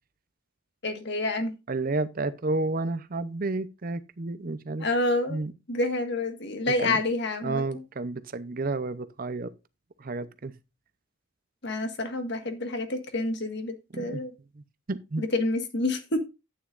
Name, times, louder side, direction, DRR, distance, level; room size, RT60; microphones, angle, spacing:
voice 1, 0.8-1.6 4.8-5.4 5.7-7.6 11.6-14.3 15.2-16.2, left 2 dB, 55° left, 1.7 m, -28 dB
voice 2, 1.7-4.9 5.3-5.5 6.7-7.0 7.4-9.5 10.0-10.5 13.9-14.2 14.5-15.2, right 3 dB, 40° right, 0.7 m, -31 dB
11.5 x 9.3 x 2.5 m
head